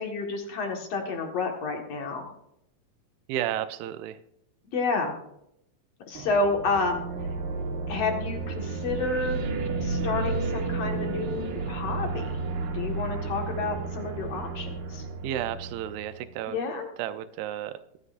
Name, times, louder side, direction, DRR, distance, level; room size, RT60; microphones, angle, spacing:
voice 1, 0.0-2.3 4.7-5.1 6.1-7.0 7.9-9.5 9.8-12.4 12.7-15.1 16.5-16.9, left 3 dB, 50° left, 3 dB, 2.3 m, -30 dB
voice 2, 3.3-4.2 15.2-16.6 17.0-17.8, right 12 dB, 85° right, 11 dB, 2.5 m, -32 dB
sound 1, 6.1-16.3, right 3 dB, 70° right, 3.0 m, -32 dB
24.0 x 9.5 x 2.5 m, 0.77 s
omnidirectional pair, 4.2 m